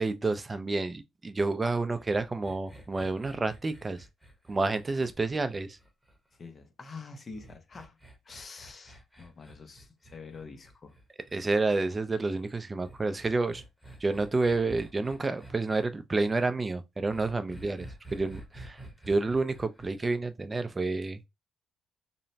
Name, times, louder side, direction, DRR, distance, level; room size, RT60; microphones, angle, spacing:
voice 1, 0.0-4.0 4.5-5.8 11.3-13.6 14.0-18.8 19.1-21.3, right 3 dB, 25° right, 0.3 m, -29 dB
sound 1, 1.9-6.4 7.3-11.4 12.8-15.5 17.1-19.9, right 1 dB, 5° left, 1.0 m, -50 dB
voice 2, 6.3-8.0 8.2-11.0, left 4 dB, 40° left, 0.6 m, -46 dB
2.9 x 2.0 x 2.7 m
cardioid pair, 90°, 0 cm